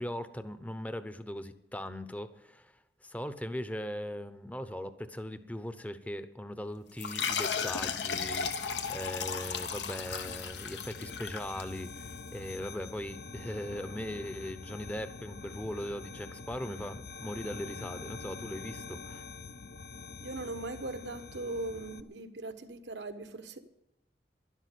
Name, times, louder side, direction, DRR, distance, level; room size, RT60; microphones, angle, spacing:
voice 1, 0.0-2.7 3.0-19.2, left 1 dB, 10° left, 12 dB, 0.7 m, -39 dB
sound 1, 7.0-12.1, left 6 dB, 85° left, 1.1 m, -35 dB
sound 2, 7.3-22.0, left 4 dB, 55° left, 0.7 m, -46 dB
voice 2, 20.2-23.6, right 2 dB, 85° right, 9 dB, 1.2 m, -39 dB
12.0 x 11.5 x 8.3 m, 0.91 s
head